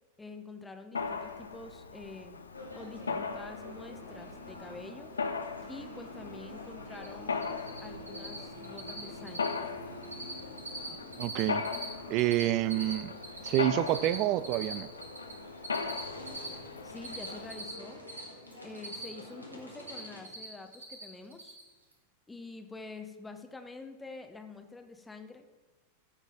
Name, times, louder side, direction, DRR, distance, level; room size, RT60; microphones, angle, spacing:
voice 1, 0.2-2.4 2.7-5.1 5.7-7.4 7.8-9.5 16.8-18.0 18.6-21.6 22.3-25.5, left 3 dB, 10° left, 0.7 m, -47 dB
Mechanisms, 0.9-17.7, left 5 dB, 75° left, 0.6 m, -39 dB
sound 1, 2.5-20.2, equal, 90° left, 1.4 m, -48 dB
Cricket, 6.9-7.1 7.3-7.8 8.1-8.4 8.6-9.0 9.3-9.6 9.8-10.3 10.6-11.9 12.1-15.3 15.6-18.2 18.5-19.3 19.6-20.5 20.7-21.0 21.3-21.6, right 2 dB, 75° right, 1.5 m, -40 dB
voice 2, 11.2-11.6 12.1-13.1 13.4-14.9, right 14 dB, 40° right, 0.3 m, -28 dB
14.0 x 4.9 x 4.0 m
figure-of-eight pair, 90°, 0 cm